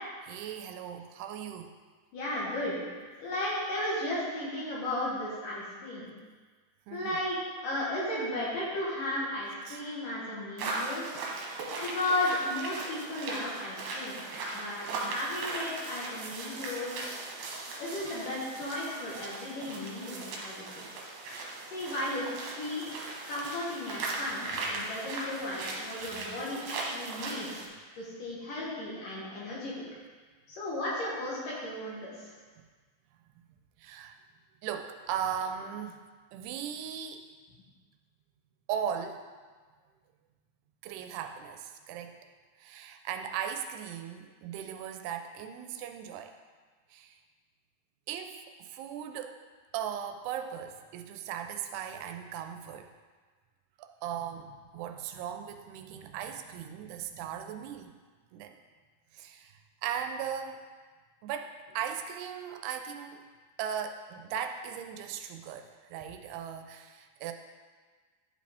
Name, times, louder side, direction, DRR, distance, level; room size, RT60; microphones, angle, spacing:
voice 1, 0.3-1.7 6.9-7.2 9.7-9.8 14.9-15.2 19.6-19.8 25.2-25.3 33.8-34.2 34.6-36.0 36.3-37.2 38.7-39.2 40.8-42.2 42.6-46.3 46.9-47.2 48.1-49.4 49.7-52.9 53.8-57.9 58.3-58.6 59.1-59.5 59.8-60.6 61.2-63.2 63.6-67.3, right 8 dB, 90° right, 6 dB, 2.6 m, -38 dB
voice 2, 2.1-2.8 3.2-6.1 6.9-11.2 11.8-14.2 14.5-17.1 17.8-20.8 21.7-23.0 23.3-27.6 28.0-29.7 30.5-32.3, left 1 dB, 65° left, -6 dB, 2.6 m, -35 dB
sound 1, 10.6-27.7, right 3 dB, 70° right, 2.8 m, -38 dB
11.0 x 5.1 x 3.4 m, 1.4 s
omnidirectional pair, 4.6 m